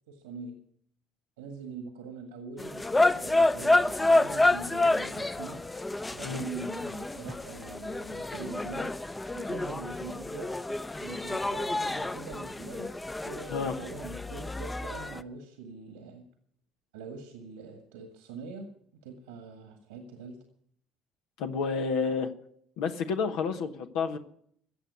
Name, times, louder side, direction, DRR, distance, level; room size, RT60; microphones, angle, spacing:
voice 1, 0.1-0.6 1.4-5.6 6.1-8.9 9.3-10.5 11.0-12.9 13.2-16.2 16.9-18.7 19.0-20.4, right 4 dB, 85° right, 5 dB, 1.7 m, -43 dB
sound 1, 2.6-15.2, left 2 dB, 15° left, 0.7 m, -29 dB
voice 2, 21.4-22.3 22.8-24.2, left 5 dB, 75° left, 6 dB, 1.1 m, -30 dB
15.0 x 7.9 x 9.6 m, 0.67 s
hypercardioid pair, 60°, 0 cm